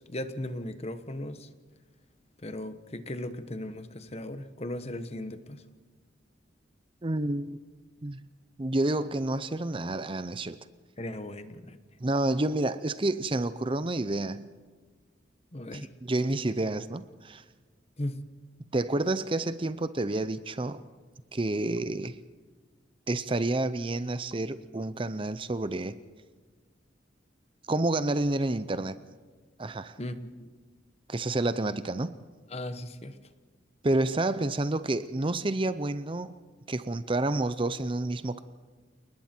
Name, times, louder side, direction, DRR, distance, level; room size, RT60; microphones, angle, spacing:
voice 1, 0.0-1.5 2.4-5.6 11.0-11.8 15.5-15.9 18.0-18.2 30.0-30.5 32.5-33.2, left 1 dB, 35° left, 10 dB, 1.2 m, -37 dB
voice 2, 7.0-7.6 8.0-8.2 8.6-10.6 12.0-14.5 15.7-17.4 18.7-20.8 21.3-22.2 23.1-26.0 27.7-29.0 29.6-30.0 31.1-32.1 33.8-36.3 36.7-38.4, right 2 dB, 25° right, 13 dB, 0.6 m, -29 dB
29.5 x 20.0 x 4.5 m, 1.5 s
head